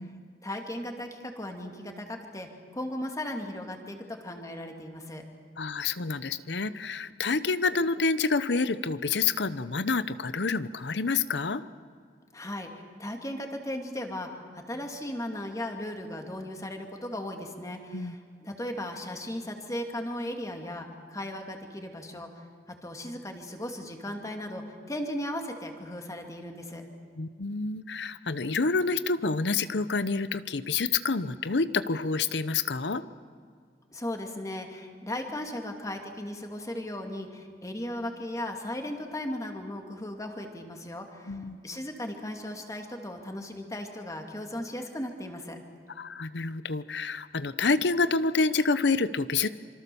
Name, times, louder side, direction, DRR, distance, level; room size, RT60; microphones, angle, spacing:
voice 1, 0.4-5.2 12.3-22.4 22.8-26.8 33.9-41.4 41.6-45.6, left 1 dB, 20° left, 3 dB, 2.5 m, -37 dB
voice 2, 5.6-11.6 17.9-18.1 27.2-33.0 41.3-41.6 46.0-49.5, left 4 dB, 75° left, 14 dB, 0.9 m, -28 dB
26.5 x 25.0 x 7.0 m, 2.1 s
head